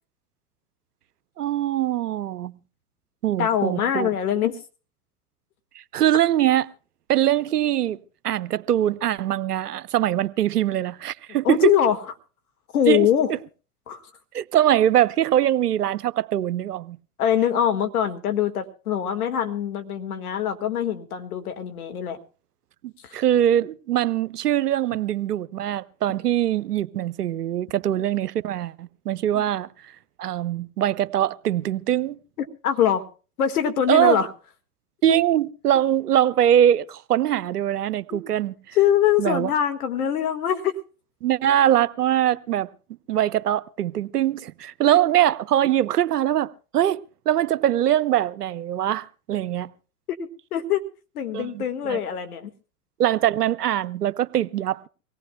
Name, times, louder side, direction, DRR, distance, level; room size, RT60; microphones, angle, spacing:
voice 1, 1.4-2.5 3.2-4.1 5.9-6.7 7.1-8.0 8.2-11.8 12.9-13.1 14.3-17.0 22.8-29.7 30.2-32.2 33.9-34.2 35.0-38.8 39.2-39.5 41.2-42.7 43.1-49.7 51.3-52.0 53.0-54.9, right 11 dB, 85° right, 0.7 m, -22 dB
voice 2, 3.4-4.6 11.4-12.0 12.7-13.3 13.9-14.0 17.2-22.2 23.0-23.2 29.3-29.4 32.4-33.1 33.4-34.3 35.1-35.2 38.1-38.2 38.7-40.8 50.2-50.8 51.2-52.5, left 9 dB, 70° left, 1.8 m, -23 dB
24.5 x 18.0 x 2.2 m
hypercardioid pair, 95°, 45 cm